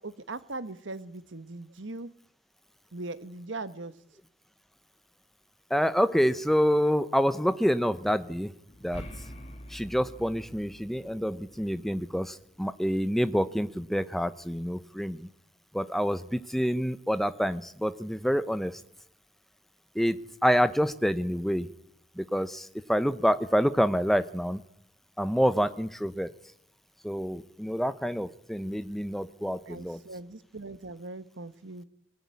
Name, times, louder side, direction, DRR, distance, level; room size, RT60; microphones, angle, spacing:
voice 1, 0.0-2.1 2.9-3.9 29.7-31.8, right 2 dB, 80° right, 12 dB, 1.3 m, -40 dB
voice 2, 5.7-8.5 8.8-9.0 9.7-15.3 15.7-18.8 19.9-21.7 22.2-24.6 25.2-26.3 27.0-30.0, equal, ahead, 12 dB, 0.8 m, -27 dB
sound 1, 8.7-12.6, equal, 35° left, 2.5 m, -46 dB
22.5 x 15.0 x 9.7 m, 0.75 s
head